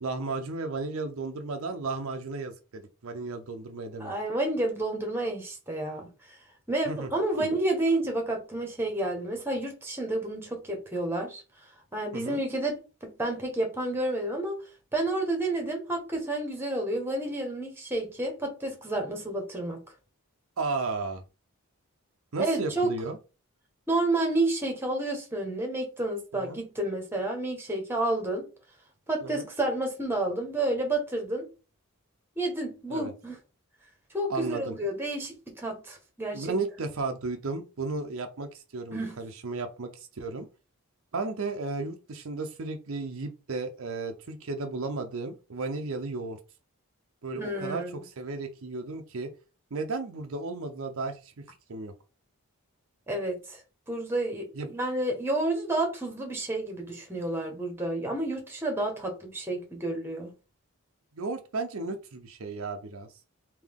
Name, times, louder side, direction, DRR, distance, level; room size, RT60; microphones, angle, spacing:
voice 1, 0.0-4.1 6.9-7.5 12.1-12.4 20.6-21.2 22.3-23.2 26.3-26.6 29.2-29.5 32.9-33.1 34.3-34.8 36.3-40.5 41.1-46.4 47.2-49.3 49.7-51.3 51.7-51.9 54.6-54.7 61.1-63.1, right 3 dB, 65° right, 0.5 m, -34 dB
voice 2, 4.0-6.4 6.7-11.4 11.9-14.6 14.9-19.8 22.4-22.9 23.9-28.5 29.1-31.4 32.4-33.4 34.1-36.6 38.9-39.1 47.4-48.0 53.1-53.6 53.9-60.3, right 2 dB, 10° right, 1.1 m, -30 dB
3.5 x 2.7 x 3.6 m
head